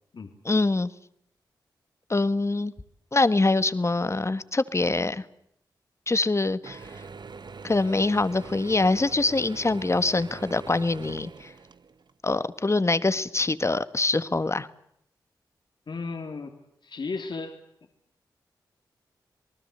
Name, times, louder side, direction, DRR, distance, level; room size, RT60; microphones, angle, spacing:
voice 1, 0.4-0.9 2.1-2.7 3.1-5.2 6.1-6.8 7.6-11.5 12.2-14.7, left 3 dB, 35° left, 14 dB, 1.7 m, -24 dB
Mechanisms / Drill, 6.6-12.1, right 4 dB, 60° right, 1.3 m, -43 dB
voice 2, 15.9-16.5 16.8-17.6, left 4 dB, 65° left, 5 dB, 3.3 m, -34 dB
28.0 x 19.5 x 8.1 m, 0.75 s
supercardioid pair, 40°, 8 cm